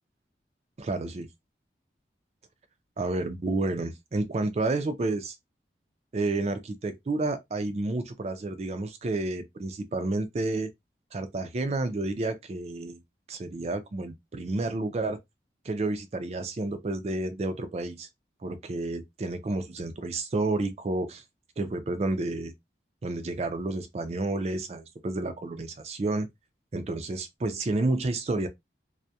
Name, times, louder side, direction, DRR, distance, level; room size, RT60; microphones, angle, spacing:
voice 1, 0.8-1.3 3.0-5.4 6.1-10.7 11.1-13.0 13.3-15.2 15.6-18.1 18.4-21.2 21.6-22.5 23.0-26.3 26.7-28.5, right 2 dB, 35° right, 0.4 m, -30 dB
2.2 x 2.0 x 2.7 m
head